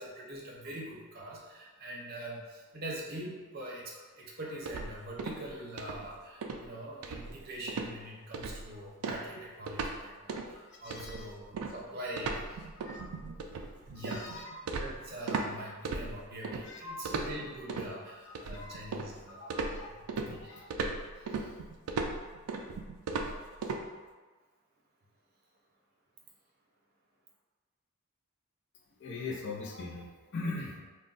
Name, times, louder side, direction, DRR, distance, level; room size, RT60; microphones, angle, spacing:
voice 1, 0.0-12.7 13.9-20.7 21.2-21.5, right 1 dB, 45° right, -3 dB, 0.6 m, -44 dB
sound 1, 4.7-5.5 5.8-6.1 6.4-6.7 7.0-7.4 7.7-7.9 8.3-8.7 9.0-10.0 10.3-10.5 10.9-15.5 15.9-16.6 17.1-17.9 18.4-19.2 19.5-23.8, right 4 dB, 80° right, 0.3 m, -36 dB
voice 2, 10.8-11.3 12.8-13.2 14.0-14.5 16.6-17.1 18.5-18.7 19.3-19.9 20.2-20.7 29.0-30.8, left 3 dB, 55° left, 0 dB, 0.5 m, -41 dB
2.3 x 2.2 x 3.8 m, 1.3 s
head